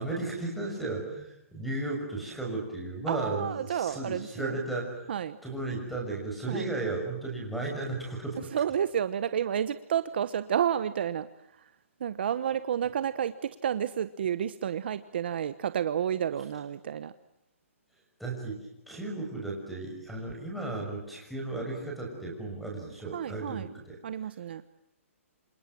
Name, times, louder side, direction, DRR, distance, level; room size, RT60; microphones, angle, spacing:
voice 1, 0.0-5.1 5.4-8.5 18.2-24.0, right 2 dB, ahead, 0 dB, 6.3 m, -35 dB
voice 2, 3.1-4.6 5.1-5.4 6.5-6.7 8.5-11.3 11.5-11.7 12.0-17.1 23.1-23.7 24.0-24.6, right 9 dB, 45° right, 13 dB, 1.1 m, -30 dB
27.5 x 27.5 x 7.6 m, 0.79 s
hypercardioid pair, 170°, 8 cm